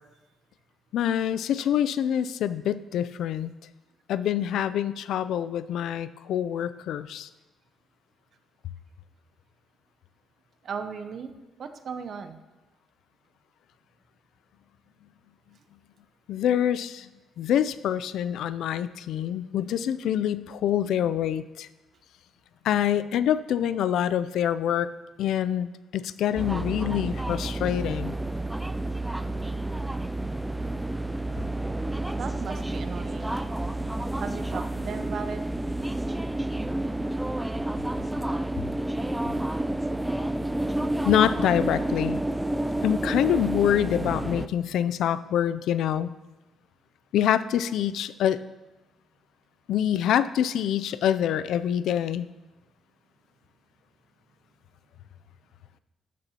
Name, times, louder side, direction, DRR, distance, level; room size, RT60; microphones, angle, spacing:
voice 1, 0.9-3.5 4.1-7.3 16.3-17.1 17.4-21.7 22.6-24.9 25.2-25.7 25.9-28.2 41.0-42.2 42.8-46.1 47.1-48.4 49.7-52.3, left 10 dB, 80° left, 14 dB, 0.3 m, -25 dB
voice 2, 10.6-11.3 11.6-12.4 28.4-28.5 32.1-33.4 34.2-35.4, right 6 dB, 55° right, 9 dB, 0.7 m, -36 dB
sound 1, 26.4-44.5, right 1 dB, 5° right, 0.3 m, -30 dB
13.0 x 6.8 x 2.9 m, 1.1 s
cardioid pair, 90°, 0 cm